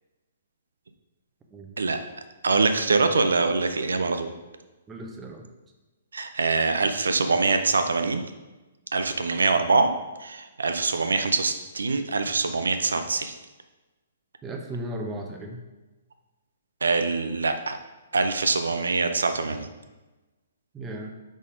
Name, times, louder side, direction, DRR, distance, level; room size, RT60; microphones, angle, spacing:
voice 1, 2.4-4.3 6.1-8.2 8.9-9.9 10.2-13.3 16.8-17.8 18.1-19.7, right 4 dB, 75° right, 8 dB, 0.5 m, -24 dB
voice 2, 4.9-5.5 14.4-15.6 20.7-21.1, right 1 dB, 15° right, 1 dB, 0.8 m, -35 dB
5.1 x 4.2 x 4.8 m, 1.1 s
figure-of-eight pair, 125°, 0 cm